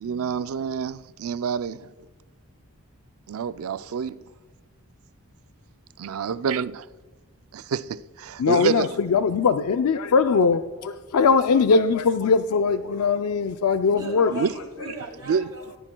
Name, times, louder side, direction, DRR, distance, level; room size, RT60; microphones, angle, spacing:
voice 1, 0.0-1.9 3.3-4.2 6.0-6.9 7.5-8.9 14.3-14.5 14.9-15.0 15.3-15.5, right 6 dB, 75° right, 0.4 m, -27 dB
voice 2, 8.4-14.5, left 5 dB, 80° left, 0.4 m, -21 dB
voice 3, 13.9-15.8, right 2 dB, 20° right, 4.1 m, -40 dB
17.0 x 14.0 x 2.2 m
head